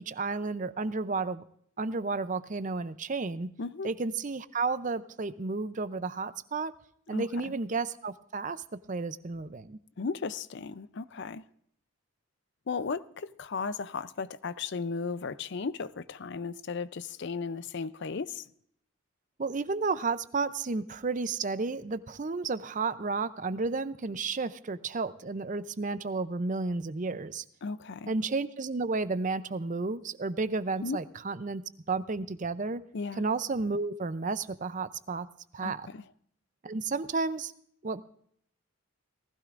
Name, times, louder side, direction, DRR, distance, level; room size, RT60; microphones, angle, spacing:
voice 1, 0.0-1.4 1.8-3.5 3.8-6.7 7.1-9.8 19.4-27.4 28.1-31.6 31.9-32.8 33.2-35.3 35.5-35.9 36.6-37.5 37.8-38.0, right 3 dB, 35° right, 0.5 m, -32 dB
voice 2, 3.6-3.9 7.1-7.5 10.0-11.4 12.7-18.5 27.6-28.1 30.8-31.0 32.9-33.2 35.6-36.0, left 4 dB, 50° left, 0.5 m, -35 dB
19.0 x 15.5 x 2.5 m
head